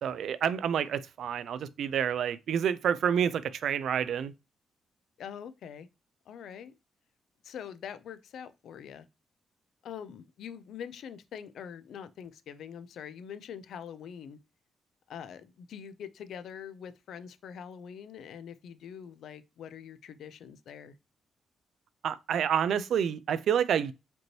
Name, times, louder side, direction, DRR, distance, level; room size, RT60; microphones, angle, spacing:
voice 1, 0.0-4.3 22.0-23.9, right 8 dB, 70° right, 0.4 m, -28 dB
voice 2, 5.2-5.9 6.3-6.8 7.4-9.1 9.8-14.4 15.1-20.9, left 8 dB, 80° left, 0.4 m, -44 dB
5.1 x 3.1 x 2.9 m
wide cardioid pair, 145°, 0 cm